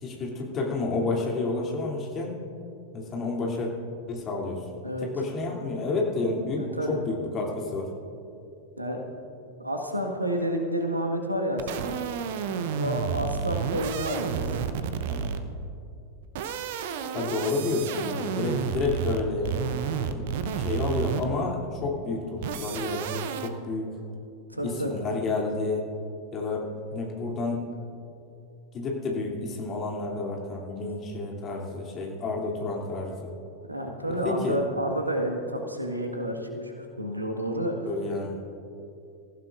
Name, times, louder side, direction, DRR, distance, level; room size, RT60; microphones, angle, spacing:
voice 1, 0.0-2.3 2.9-3.7 4.1-4.6 5.0-7.9 12.6-12.8 15.1-15.3 17.1-19.7 20.1-20.2 20.6-23.9 24.6-25.9 26.3-27.6 28.7-33.3 34.2-34.6 37.9-38.3, left 3 dB, 30° left, -1 dB, 2.8 m, -30 dB
voice 2, 6.6-7.0 8.8-9.0 9.6-12.0 12.8-14.8 24.5-25.0 33.7-37.9, equal, 85° right, 3 dB, 1.6 m, -30 dB
sound 1, 11.6-15.6 16.2-21.5 22.4-23.5, right 7 dB, 50° right, 0.8 m, -31 dB
25.0 x 15.5 x 2.5 m, 2.7 s
figure-of-eight pair, 90°, 0 cm